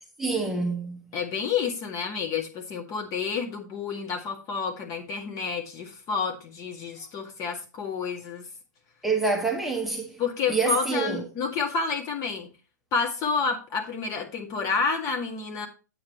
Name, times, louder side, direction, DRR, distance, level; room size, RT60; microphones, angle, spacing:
voice 1, 0.2-1.0 9.0-10.2 10.5-11.3, right 4 dB, ahead, 1.0 m, -27 dB
voice 2, 1.1-8.5 10.2-12.5 12.9-15.7, left 5 dB, 35° left, 2.1 m, -29 dB
8.5 x 7.8 x 3.0 m
hypercardioid pair, 120°, 10 cm